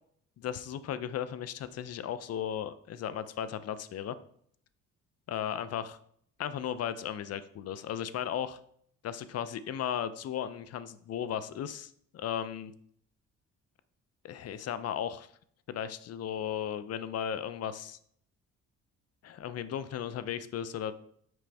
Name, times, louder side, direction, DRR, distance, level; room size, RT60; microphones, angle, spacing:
voice 1, 0.4-4.2 5.3-6.0 6.4-8.6 9.0-12.7 14.2-15.3 15.7-18.0 19.2-20.9, left 9 dB, 55° left, 14 dB, 0.5 m, -36 dB
6.2 x 5.0 x 3.4 m, 0.64 s
cardioid pair, 90°, 30 cm